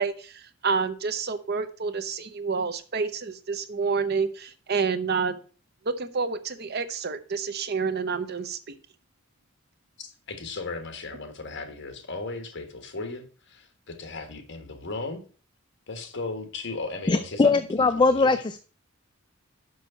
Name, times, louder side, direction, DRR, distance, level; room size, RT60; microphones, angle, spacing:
voice 1, 0.0-5.4 5.8-8.7, right 5 dB, 50° right, 11 dB, 0.7 m, -28 dB
voice 2, 10.0-15.2 15.9-18.4, left 3 dB, 60° left, 7 dB, 1.5 m, -36 dB
voice 3, 17.1-18.4, left 3 dB, 20° left, 10 dB, 0.3 m, -20 dB
6.2 x 5.8 x 5.6 m, 0.39 s
head